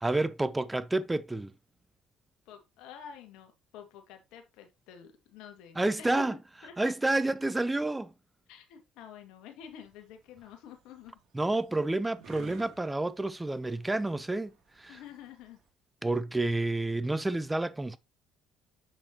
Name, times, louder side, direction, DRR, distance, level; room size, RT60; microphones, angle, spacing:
voice 1, 0.0-1.5 5.8-6.3 6.8-8.1 11.3-15.0 16.0-18.0, right 2 dB, 15° right, 0.6 m, -29 dB
voice 2, 2.5-6.2 6.6-6.9 8.5-11.1 14.9-15.6 16.4-16.6, left 8 dB, 70° left, 2.0 m, -49 dB
sound 1, 9.6-15.7, right 6 dB, 55° right, 2.6 m, -54 dB
7.6 x 6.1 x 2.9 m
hypercardioid pair, 60°, 0 cm